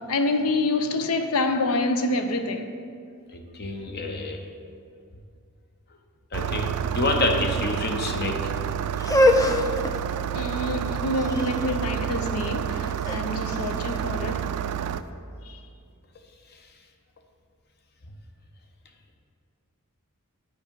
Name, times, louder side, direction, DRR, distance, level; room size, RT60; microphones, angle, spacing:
voice 1, 0.0-2.7 10.3-14.5 15.4-15.6, left 2 dB, 75° left, 0.6 m, -27 dB
voice 2, 3.3-4.4 6.3-8.5 9.4-9.5, left 2 dB, 50° left, 0.8 m, -28 dB
Engine starting, 6.3-15.0, right 9 dB, 85° right, 0.3 m, -29 dB
sound 1, 9.0-14.9, left 1 dB, 15° left, 0.3 m, -26 dB
9.7 x 4.7 x 5.3 m
head